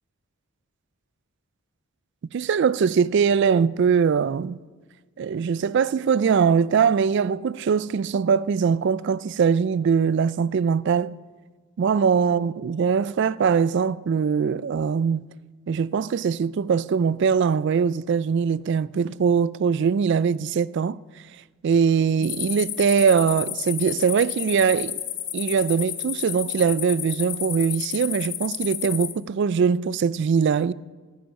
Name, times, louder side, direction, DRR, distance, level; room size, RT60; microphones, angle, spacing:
voice 1, 2.3-4.6 5.2-11.1 11.8-15.3 15.7-21.0 21.6-25.0 25.3-30.7, right 6 dB, 55° right, 0.3 m, -22 dB
sound 1, 22.2-29.1, left 11 dB, 55° left, 1.3 m, -31 dB
17.0 x 10.0 x 5.3 m
head